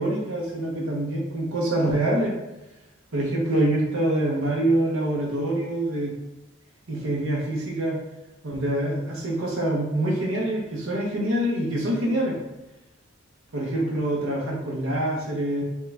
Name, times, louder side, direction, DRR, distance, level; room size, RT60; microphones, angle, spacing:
voice 1, 0.0-2.3 3.1-6.1 6.9-8.0 8.4-12.4 13.5-15.6, right 1 dB, 85° right, -3 dB, 0.8 m, -25 dB
4.5 x 2.3 x 3.4 m, 0.96 s
head